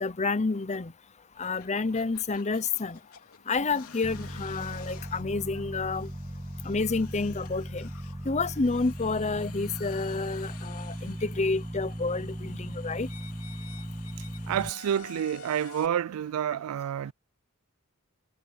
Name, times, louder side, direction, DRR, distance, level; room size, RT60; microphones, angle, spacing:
voice 1, 0.0-0.9 1.4-3.0 3.5-6.1 6.6-7.9 8.2-13.1, left 3 dB, 30° left, 0.7 m, -29 dB
sound 1, 1.3-15.9, left 6 dB, 80° left, 2.9 m, -51 dB
sound 2, 4.0-14.7, right 1 dB, 15° right, 1.5 m, -38 dB
voice 2, 14.5-17.1, right 9 dB, 75° right, 0.3 m, -29 dB
head